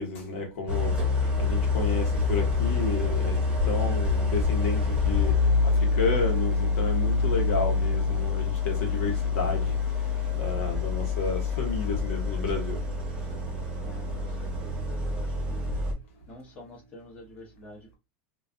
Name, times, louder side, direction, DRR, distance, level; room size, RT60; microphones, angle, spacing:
voice 1, 0.0-9.8 10.2-12.8, left 3 dB, 85° left, 1.1 m, -32 dB
Idling, 0.7-15.9, left 4 dB, 10° right, 0.9 m, -26 dB
voice 2, 13.8-15.8 16.3-18.0, left 1 dB, 20° left, 0.8 m, -48 dB
2.4 x 2.3 x 2.3 m
supercardioid pair, 170°, 7 cm